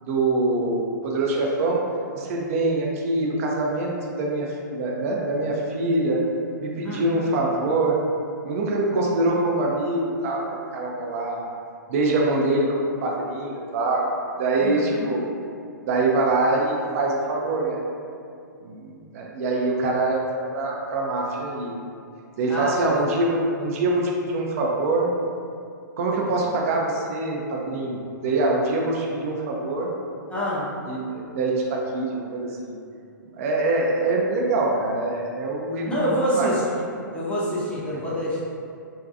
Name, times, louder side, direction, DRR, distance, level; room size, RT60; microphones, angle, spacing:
voice 1, 0.0-1.8 2.1-6.2 6.6-8.0 8.4-11.4 11.9-15.2 15.9-17.8 18.6-20.2 20.5-21.8 22.4-25.1 26.0-29.9 30.9-32.8 33.3-36.5, right 2 dB, 45° right, -1 dB, 0.4 m, -24 dB
voice 2, 14.6-15.1 22.5-22.9 30.3-30.7 35.9-36.6 37.1-38.4, equal, 10° left, -8 dB, 0.6 m, -26 dB
2.6 x 2.2 x 2.5 m, 2.4 s
figure-of-eight pair, 115°, 11 cm